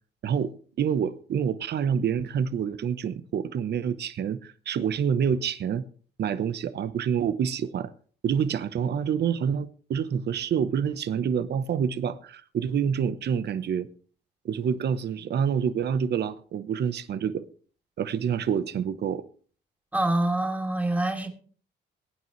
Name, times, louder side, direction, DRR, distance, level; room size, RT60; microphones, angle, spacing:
voice 1, 0.2-5.8 6.2-7.9 8.2-13.9 14.4-17.4 18.0-19.2, right 7 dB, 55° right, 0.9 m, -27 dB
voice 2, 19.9-21.3, right 1 dB, 5° right, 3.1 m, -25 dB
22.0 x 9.4 x 3.2 m
cardioid pair, 90°, 20 cm